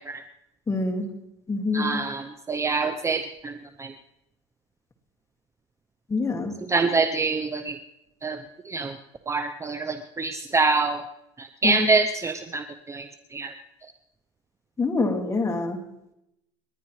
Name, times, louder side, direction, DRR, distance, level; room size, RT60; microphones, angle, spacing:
voice 1, 0.7-1.0 1.5-1.9 6.1-6.5 11.6-11.9 14.8-15.8, left 3 dB, 15° left, 4 dB, 2.0 m, -25 dB
voice 2, 1.7-3.5 3.8-3.9 6.7-7.7 8.2-8.4 8.7-8.9 9.3-11.0 11.4-13.1 13.3-13.5, right 4 dB, 15° right, 8 dB, 0.6 m, -25 dB
29.5 x 11.0 x 3.2 m, 0.86 s
cardioid pair, 125°, 17 cm